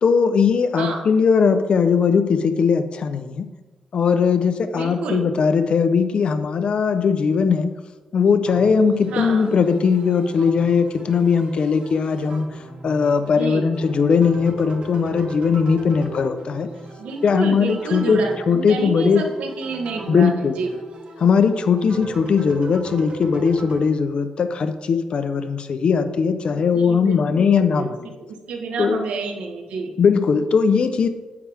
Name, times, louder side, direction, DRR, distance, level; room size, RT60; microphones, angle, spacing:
voice 1, 0.0-3.5 3.9-7.7 8.1-12.5 12.8-16.7 17.2-19.2 20.1-20.6 21.2-27.9 28.8-29.0 30.0-31.1, left 5 dB, 55° left, 9 dB, 0.8 m, -19 dB
voice 2, 0.8-1.1 4.7-5.3 9.1-9.5 13.2-13.7 17.0-20.8 26.5-27.9 28.2-29.9, right 4 dB, 90° right, 3 dB, 1.5 m, -29 dB
sound 1, 8.5-23.8, right 2 dB, 55° right, 1.6 m, -39 dB
9.8 x 8.8 x 3.6 m, 1.2 s
cardioid pair, 105°, 2 cm